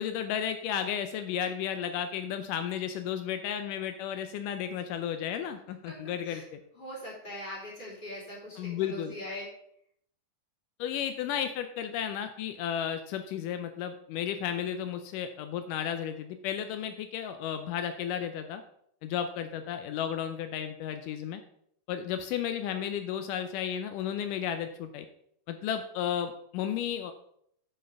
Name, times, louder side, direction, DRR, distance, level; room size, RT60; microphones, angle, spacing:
voice 1, 0.0-6.6 8.6-9.1 10.8-18.6 19.0-21.4 21.9-25.1 25.5-27.1, left 9 dB, 80° left, 8 dB, 2.2 m, -33 dB
voice 2, 5.9-6.5 6.7-9.5, left 1 dB, 15° left, -4 dB, 3.0 m, -41 dB
9.8 x 5.4 x 5.2 m, 0.70 s
omnidirectional pair, 3.7 m